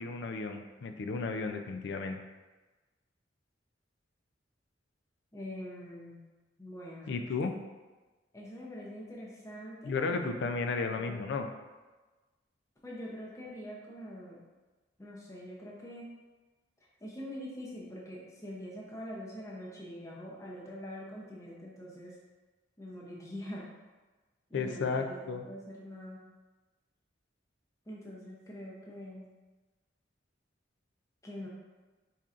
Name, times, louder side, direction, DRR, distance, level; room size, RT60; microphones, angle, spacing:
voice 1, 0.0-2.2 7.1-7.5 9.8-11.5 24.5-25.4, left 4 dB, 65° left, 6 dB, 0.4 m, -33 dB
voice 2, 5.3-6.2 6.6-7.3 8.3-10.4 10.9-11.3 12.8-14.4 15.0-16.1 17.0-22.2 22.8-23.7 24.5-26.2 27.9-29.3 31.2-31.5, equal, 15° left, -4 dB, 0.6 m, -44 dB
4.2 x 3.7 x 2.4 m, 1.2 s
head